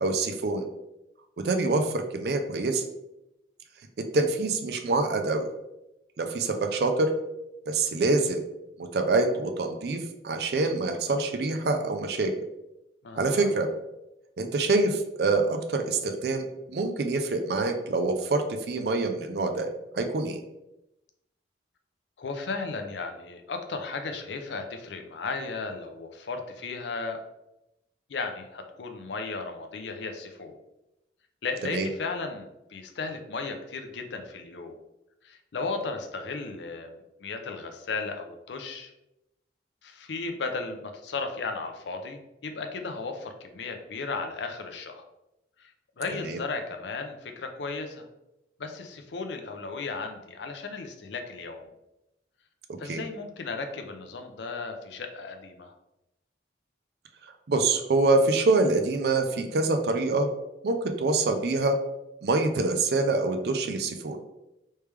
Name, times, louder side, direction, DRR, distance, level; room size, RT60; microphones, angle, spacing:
voice 1, 0.0-0.7 1.4-2.8 4.1-5.4 6.2-7.1 7.7-8.4 8.9-12.3 13.2-13.7 14.4-20.4 31.7-31.9 46.2-46.4 52.9-53.0 57.5-60.3 60.6-61.8 62.2-64.2, right 3 dB, 60° right, 5 dB, 0.4 m, -25 dB
voice 2, 13.0-13.5 22.2-27.2 28.1-30.5 31.4-34.8 35.2-38.9 39.8-45.0 45.6-45.7 46.0-48.0 48.6-51.6 52.8-55.7, left 4 dB, 75° left, 5 dB, 0.5 m, -35 dB
3.2 x 3.2 x 3.3 m, 0.91 s
head